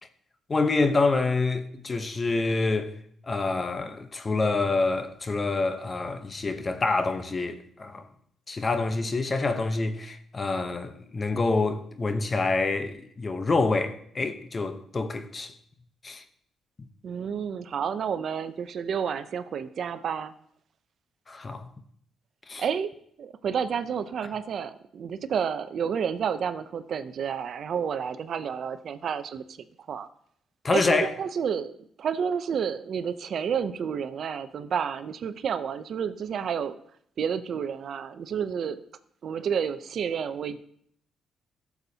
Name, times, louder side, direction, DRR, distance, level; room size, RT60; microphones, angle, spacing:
voice 1, 0.5-2.9 3.3-8.1 8.5-15.5 16.0-16.2 21.3-21.7 22.5-22.6 30.6-31.1, left 3 dB, 30° left, 0.8 m, -27 dB
voice 2, 17.0-20.3 22.6-22.9 23.2-29.4 29.9-30.1 30.7-31.7 32.0-36.8 37.2-38.8 39.2-40.6, right 7 dB, 60° right, 0.5 m, -30 dB
14.0 x 7.0 x 2.8 m
cardioid pair, 90°, 0 cm